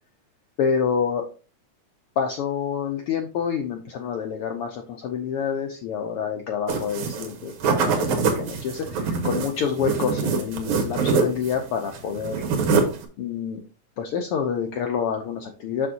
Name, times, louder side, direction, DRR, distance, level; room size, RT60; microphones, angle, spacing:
voice 1, 0.6-1.2 2.2-12.4 13.2-13.6 14.0-15.9, left 7 dB, 80° left, 4 dB, 1.3 m, -27 dB
sound 1, 6.7-7.3 7.6-11.6 11.9-13.0, right 5 dB, 90° right, 2.7 m, -24 dB
6.8 x 6.3 x 2.8 m, 0.36 s
omnidirectional pair, 3.3 m